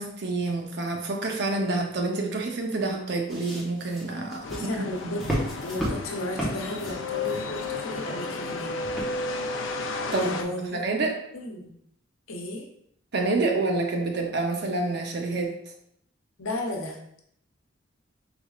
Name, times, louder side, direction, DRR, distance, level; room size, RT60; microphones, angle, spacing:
voice 1, 0.0-5.2 10.1-10.3 10.6-11.2 13.1-15.5, right 3 dB, 55° right, 2 dB, 0.7 m, -28 dB
sound 1, 3.3-8.0 8.8-9.4 10.0-10.1, equal, ahead, 1.0 m, -33 dB
sound 2, 4.4-10.4, left 3 dB, 70° left, 0.5 m, -33 dB
voice 2, 4.5-5.2 5.6-8.8 10.0-10.8 11.3-11.7 12.3-12.6 16.4-17.0, left 1 dB, 85° left, 1 dB, 0.9 m, -34 dB
5.2 x 3.4 x 2.4 m, 0.71 s
head